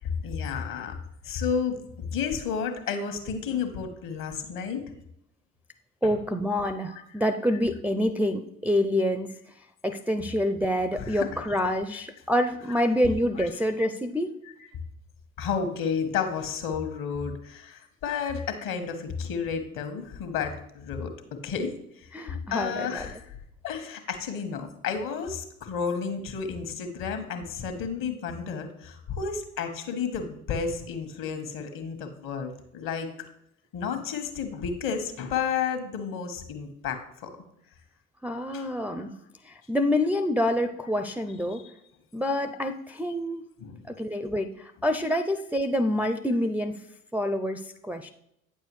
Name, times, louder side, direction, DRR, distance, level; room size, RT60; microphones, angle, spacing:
voice 1, 0.2-0.9 1.2-1.8 2.1-4.8 6.0-6.1 6.9-7.0 11.0-11.3 11.9-12.0 12.7-12.8 15.4-21.1 21.4-23.3 23.6-33.1 33.7-37.3 38.5-39.1 41.5-41.7 43.6-43.8, left 6 dB, 55° left, 7 dB, 1.4 m, -32 dB
voice 2, 6.0-9.3 9.8-14.3 22.1-23.1 38.2-39.1 39.5-41.6 42.1-43.5 43.9-46.7 47.1-48.1, left 1 dB, 5° right, 6 dB, 0.4 m, -27 dB
9.1 x 6.9 x 3.2 m, 0.76 s
figure-of-eight pair, 55°, 40 cm